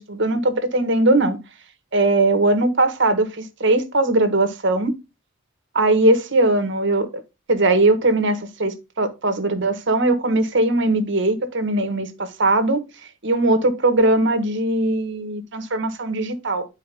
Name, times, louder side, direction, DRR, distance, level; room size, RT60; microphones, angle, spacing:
voice 1, 0.0-1.4 1.9-4.9 5.7-7.2 7.5-12.8 13.2-16.7, right 2 dB, 60° right, 1.4 m, -20 dB
10.0 x 4.5 x 3.5 m
head